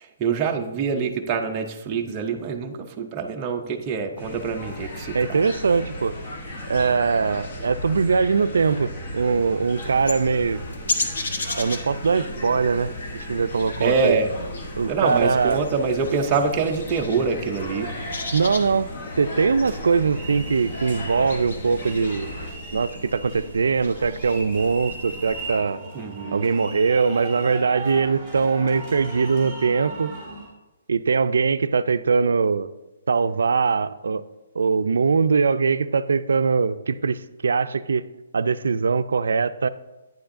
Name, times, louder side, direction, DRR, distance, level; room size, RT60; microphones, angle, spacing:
voice 1, 0.0-5.4 13.8-14.3 14.9-17.9 25.9-26.5, right 5 dB, 15° right, 2 dB, 0.4 m, -25 dB
sound 1, 4.2-22.5, left 1 dB, 35° left, 0.9 m, -36 dB
voice 2, 5.1-6.2 6.7-10.6 11.5-12.9 13.3-14.2 14.8-15.6 18.3-18.9 19.2-22.3 22.7-25.8 26.3-30.1 30.9-32.7 33.1-34.2 34.6-38.0 38.3-39.7, right 5 dB, 80° right, 13 dB, 0.3 m, -22 dB
sound 2, 9.8-25.5, left 2 dB, 60° left, 1.0 m, -36 dB
sound 3, 17.6-30.5, right 2 dB, 15° left, 2.6 m, -38 dB
9.3 x 7.1 x 2.5 m, 1.1 s
hypercardioid pair, 175°, 0 cm